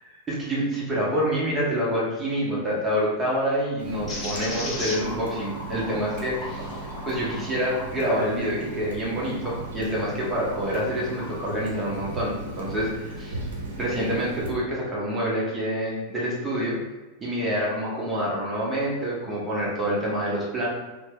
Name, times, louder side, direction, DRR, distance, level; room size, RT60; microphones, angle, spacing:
voice 1, 0.3-6.7 7.0-13.4 13.8-16.8 17.2-20.7, equal, 15° right, -6 dB, 1.0 m, -27 dB
Water tap faucet, 3.8-14.5, right 2 dB, 65° right, 0.5 m, -37 dB
sound 1, 4.1-9.6 10.1-11.3, left 1 dB, 10° left, 1.0 m, -38 dB
2.6 x 2.2 x 3.4 m, 1.2 s
figure-of-eight pair, 90°, 0 cm